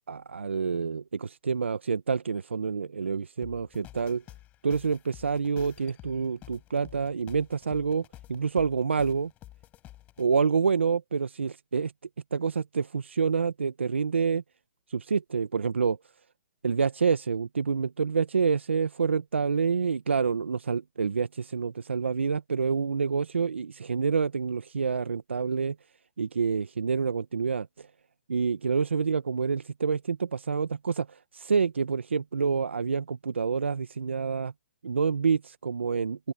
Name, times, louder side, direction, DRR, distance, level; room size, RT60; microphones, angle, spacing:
voice 1, 0.0-4.2 4.6-9.3 10.2-11.9 12.3-14.4 14.9-16.0 16.6-25.7 26.2-27.9 28.3-34.5 34.8-36.3, right 5 dB, 85° right, 1.1 m, -27 dB
sound 1, 3.4-10.2, left 15 dB, 25° left, 7.6 m, -50 dB
open air
hypercardioid pair, 130°, 6 cm